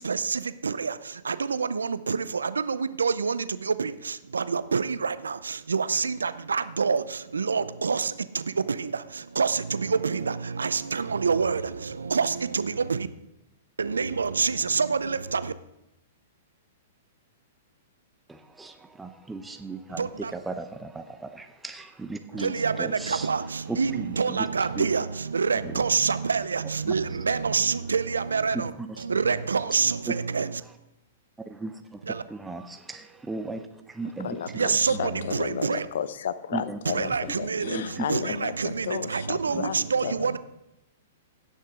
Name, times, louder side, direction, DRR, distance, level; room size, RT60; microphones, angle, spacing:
voice 1, 0.0-13.1 13.8-15.5 19.9-20.3 22.3-28.7 29.0-30.6 32.0-32.2 34.5-35.9 36.9-40.4, right 5 dB, 85° right, 0.5 m, -27 dB
voice 2, 18.3-23.3 23.7-24.5 24.8-24.9 25.6-25.7 28.5-28.6 30.1-30.2 31.4-32.0 32.3-34.8 35.0-35.2 36.5-36.8 37.6-38.0 39.5-39.6, right 3 dB, 10° right, 0.7 m, -36 dB
voice 3, 34.2-40.4, left 8 dB, 70° left, 0.6 m, -33 dB
16.5 x 6.5 x 3.7 m
hypercardioid pair, 115°, 0 cm